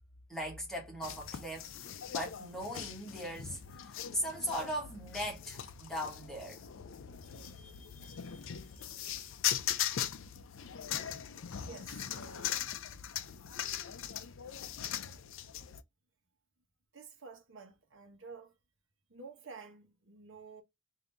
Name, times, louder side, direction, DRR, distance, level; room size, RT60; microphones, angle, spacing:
voice 1, 0.3-1.7 2.1-6.6 7.4-8.5, equal, ahead, 1.3 m, -39 dB
sound 1, 1.0-15.8, left 10 dB, 65° left, 0.4 m, -40 dB
voice 2, 11.6-12.7 16.9-18.6 19.1-20.6, right 4 dB, 60° right, 1.1 m, -51 dB
3.7 x 2.7 x 3.4 m
head